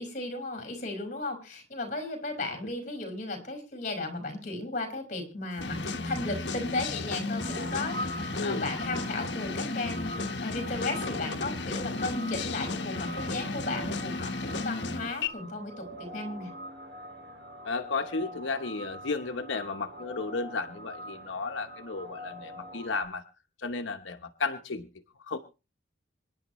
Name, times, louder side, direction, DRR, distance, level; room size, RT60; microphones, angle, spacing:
voice 1, 0.0-16.5, left 2 dB, 40° left, 5 dB, 5.2 m, -35 dB
sound 1, 5.6-15.3, left 3 dB, 65° left, 1.3 m, -34 dB
sound 2, 7.3-23.0, right 1 dB, 55° right, 2.9 m, -44 dB
voice 2, 17.6-23.2 23.6-24.9 25.3-25.4, left 4 dB, 85° left, 6 dB, 1.0 m, -33 dB
26.0 x 10.5 x 3.1 m, 0.32 s
head